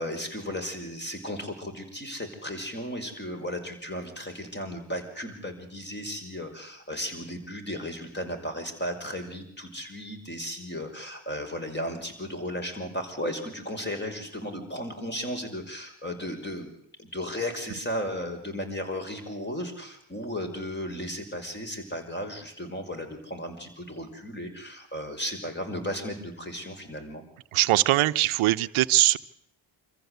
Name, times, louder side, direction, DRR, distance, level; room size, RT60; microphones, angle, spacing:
voice 1, 0.0-16.7 17.0-27.2, equal, 20° left, 5 dB, 5.6 m, -35 dB
voice 2, 27.5-29.2, right 17 dB, 80° right, 13 dB, 0.9 m, -21 dB
25.5 x 14.5 x 8.1 m, 0.71 s
supercardioid pair, 65°, 48 cm